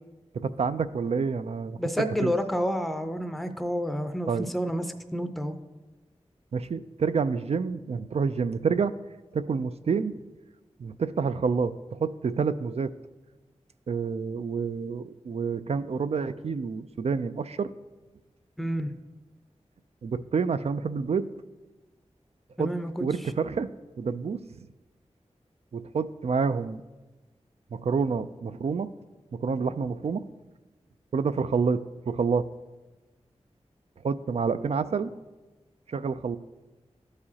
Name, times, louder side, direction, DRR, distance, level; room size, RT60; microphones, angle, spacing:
voice 1, 0.4-1.8 2.2-2.3 4.3-4.5 6.5-8.9 9.3-10.1 10.8-12.9 13.9-17.7 20.0-21.3 22.6-22.7 23.0-23.7 24.0-24.7 25.7-26.8 27.7-28.9 29.3-30.2 31.1-32.4 34.0-35.1 35.9-36.4, right 5 dB, 60° right, 12 dB, 0.4 m, -28 dB
voice 2, 1.8-4.8 5.1-5.6 18.6-18.9 22.6-23.1, equal, ahead, 8 dB, 0.5 m, -29 dB
12.5 x 4.9 x 2.8 m, 1.1 s
cardioid pair, 50°, 12 cm